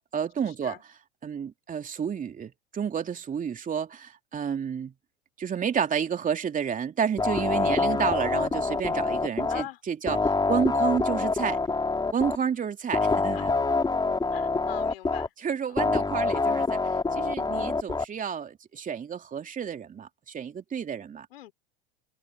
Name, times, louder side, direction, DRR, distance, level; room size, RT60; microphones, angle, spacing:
voice 1, 0.0-4.9 5.4-11.6 12.1-13.9 15.4-16.8 17.1-21.3, right 7 dB, 25° right, 3.2 m, -30 dB
sound 1, 7.2-9.6 10.1-12.4 12.9-15.3 15.8-18.0, left 3 dB, 15° left, 5.3 m, -26 dB
voice 2, 14.3-15.3 21.3-21.5, left 14 dB, 75° left, 4.9 m, -42 dB
hypercardioid pair, 90°, 30 cm